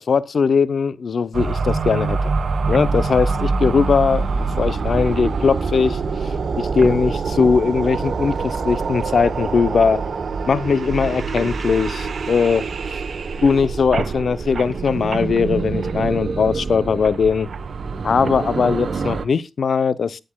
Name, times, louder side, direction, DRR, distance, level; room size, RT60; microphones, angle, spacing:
voice 1, 0.0-2.3 2.7-6.3 6.6-10.0 10.5-13.0 13.4-17.5 18.0-20.2, left 5 dB, 70° left, 0.6 m, -20 dB
sound 1, 1.3-19.3, right 4 dB, 70° right, 1.0 m, -25 dB
23.0 x 9.0 x 2.3 m
cardioid pair, 60°, 0 cm